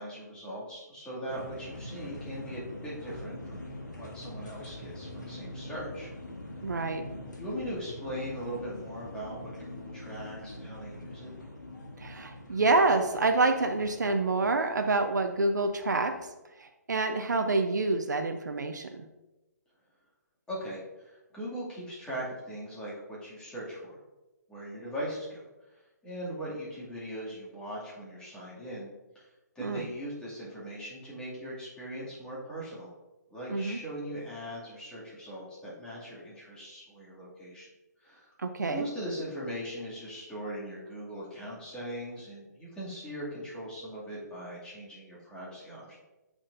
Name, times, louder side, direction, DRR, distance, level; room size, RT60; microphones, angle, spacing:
voice 1, 0.0-6.1 7.4-11.3 20.5-24.0 24.5-25.4 26.0-28.9 29.1-29.3 29.6-32.9 33.3-37.7 38.0-38.3 38.7-46.0, equal, 10° left, -8 dB, 2.3 m, -40 dB
sound 1, 1.3-16.3, left 1 dB, 85° left, 1.5 m, -44 dB
voice 2, 6.6-7.0 12.0-16.1 16.6-19.1 29.6-29.8 33.5-33.8 38.4-38.8, right 3 dB, 80° right, 6 dB, 0.7 m, -27 dB
8.6 x 6.1 x 2.6 m, 1.1 s
figure-of-eight pair, 135°, 10 cm